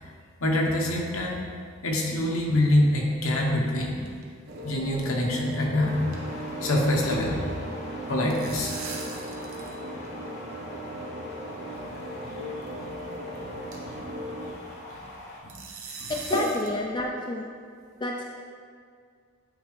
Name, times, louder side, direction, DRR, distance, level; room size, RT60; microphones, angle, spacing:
voice 1, 0.4-1.4 1.8-4.1 4.6-7.5 8.1-8.8 9.6-9.7 12.2-12.4 12.8-12.9 13.3-13.5 13.8-13.9 14.4-14.5 14.9-15.0 15.4-15.5 16.0-16.1, left 1 dB, 75° left, -1 dB, 1.1 m, -26 dB
sound 1, 3.5-4.2 4.5-4.7 4.9-5.0 5.4-5.6 5.9-7.2 8.0-9.8 10.0-10.1 11.0-11.1 12.0-12.2 12.6-12.7 13.1-13.2 13.7-14.0 15.5-16.8, right 5 dB, 80° right, 0.9 m, -41 dB
sound 2, 4.5-14.5, right 1 dB, 45° right, 0.5 m, -38 dB
sound 3, 5.8-15.4, left 1 dB, 50° left, 1.0 m, -43 dB
voice 2, 16.1-17.4 18.0-18.2, left 2 dB, 20° left, 0 dB, 0.3 m, -30 dB
9.1 x 4.1 x 3.3 m, 2.1 s
head